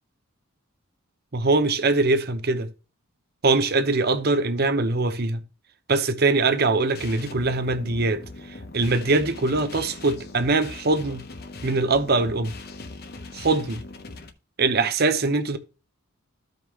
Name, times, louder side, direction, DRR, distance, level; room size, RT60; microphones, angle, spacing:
voice 1, 1.3-2.7 3.4-5.4 5.9-8.2 8.7-11.2 11.6-12.5 13.3-13.8 14.6-15.6, right 3 dB, 45° right, 0.8 m, -22 dB
sound 1, 6.9-14.3, left 3 dB, 45° left, 1.0 m, -40 dB
14.0 x 5.2 x 3.1 m
head